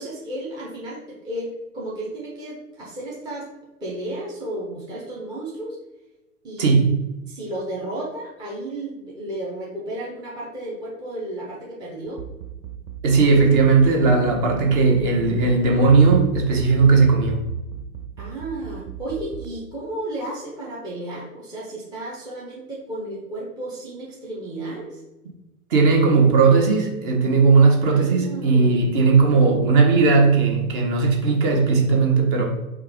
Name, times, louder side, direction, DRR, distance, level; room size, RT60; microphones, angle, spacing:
voice 1, 0.0-3.5 3.8-5.8 6.4-6.8 7.3-12.2 18.2-25.0 27.8-28.8, right 1 dB, 10° right, -6 dB, 0.6 m, -33 dB
voice 2, 6.6-7.1 13.0-17.4 25.7-32.5, right 4 dB, 35° right, 1 dB, 1.0 m, -17 dB
sound 1, 12.1-19.5, right 10 dB, 65° right, 0.5 m, -33 dB
4.5 x 2.4 x 3.6 m, 1.0 s
figure-of-eight pair, 100°, 43 cm